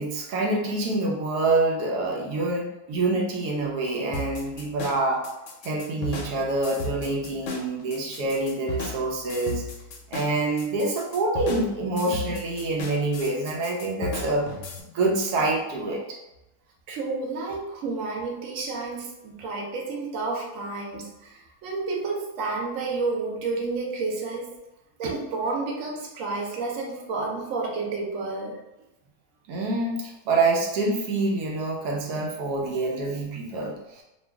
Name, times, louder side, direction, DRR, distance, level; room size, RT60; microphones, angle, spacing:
voice 1, 0.0-5.2 5.6-9.6 10.1-14.5 14.9-16.2 29.5-34.0, right 2 dB, 90° right, 0 dB, 1.2 m, -26 dB
sound 1, 4.1-14.8, left 2 dB, 65° left, 0.8 m, -35 dB
voice 2, 16.9-24.5 25.0-28.6, right 3 dB, 65° right, -2 dB, 1.0 m, -30 dB
3.0 x 2.3 x 3.4 m, 0.95 s
omnidirectional pair, 1.6 m